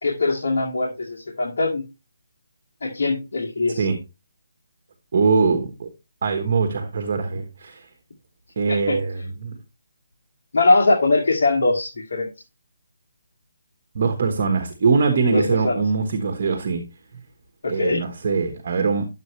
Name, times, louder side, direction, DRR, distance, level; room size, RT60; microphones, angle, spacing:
voice 1, 0.0-1.8 2.8-3.8 8.7-9.0 10.5-12.3 15.3-15.8 17.6-18.0, left 3 dB, 65° left, 2.3 m, -21 dB
voice 2, 5.1-5.9 6.2-7.9 8.6-9.6 13.9-16.9 17.1-17.2 17.7-19.1, right 4 dB, 40° right, 1.3 m, -22 dB
11.0 x 7.7 x 3.2 m
hypercardioid pair, 170°, 0 cm